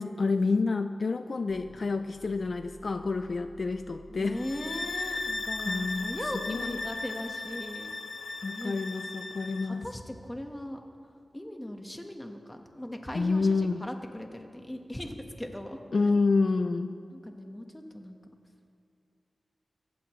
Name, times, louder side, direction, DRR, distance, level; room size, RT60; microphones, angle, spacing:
voice 1, 0.0-4.4 5.2-5.3 5.6-6.1 6.5-6.8 8.4-9.9 13.1-13.8 15.9-16.9, left 3 dB, 50° left, 8 dB, 0.4 m, -28 dB
sound 1, 1.5-7.1, right 2 dB, 50° right, 1.7 m, -53 dB
voice 2, 4.1-7.9 8.5-8.8 9.6-10.8 11.3-15.8 17.1-18.2, left 1 dB, 10° left, 3 dB, 1.4 m, -39 dB
sound 2, 4.4-9.7, left 3 dB, 70° left, 0.9 m, -36 dB
25.0 x 15.0 x 3.2 m, 2.5 s
wide cardioid pair, 115°, 0 cm